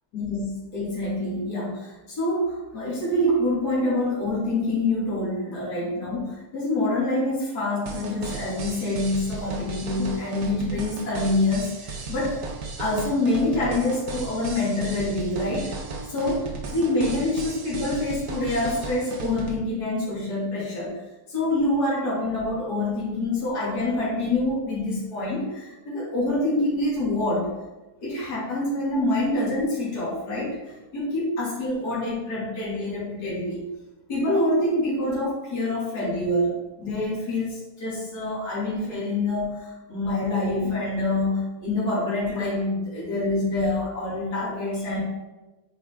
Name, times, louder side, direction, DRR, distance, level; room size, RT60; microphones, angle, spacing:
voice 1, 0.1-12.4 12.8-15.7 16.1-20.9 21.3-27.5 28.0-33.7 34.1-45.0, left 2 dB, 75° left, -8 dB, 2.7 m, -26 dB
sound 1, 7.9-19.6, right 4 dB, 65° right, 1.3 m, -35 dB
9.0 x 4.1 x 3.5 m, 1.1 s
omnidirectional pair, 1.7 m